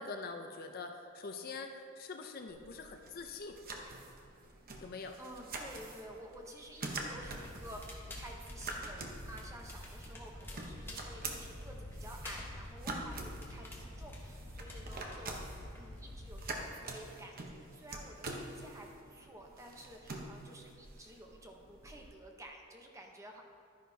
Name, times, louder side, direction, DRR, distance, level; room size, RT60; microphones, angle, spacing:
voice 1, 0.0-3.6 4.8-5.2, left 4 dB, 45° left, 5 dB, 0.5 m, -44 dB
sound 1, 2.5-22.1, right 2 dB, 45° right, 0.9 m, -46 dB
voice 2, 5.2-23.4, right 1 dB, 15° right, 1 dB, 0.8 m, -51 dB
Crackle, 7.1-16.5, left 1 dB, 10° left, 1.2 m, -47 dB
11.5 x 10.5 x 2.8 m, 2.4 s
head